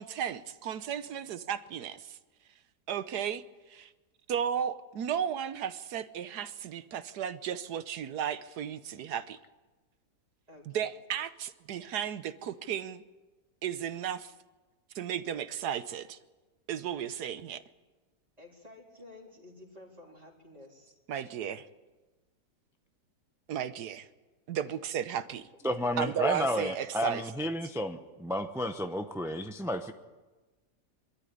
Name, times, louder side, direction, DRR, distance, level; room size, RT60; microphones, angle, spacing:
voice 1, 0.0-2.2 2.9-3.9 4.3-9.4 10.7-13.0 13.6-14.3 14.9-16.2 16.7-17.6 21.1-21.7 23.5-24.1 24.5-25.5 26.0-27.2, right 9 dB, 70° right, 13 dB, 1.4 m, -34 dB
voice 2, 1.1-1.5 10.5-10.9 18.4-21.0 24.6-24.7, left 2 dB, 20° right, -1 dB, 3.8 m, -52 dB
voice 3, 25.6-29.9, left 1 dB, 5° right, 6 dB, 0.4 m, -32 dB
23.0 x 13.5 x 10.0 m, 1.2 s
omnidirectional pair, 1.8 m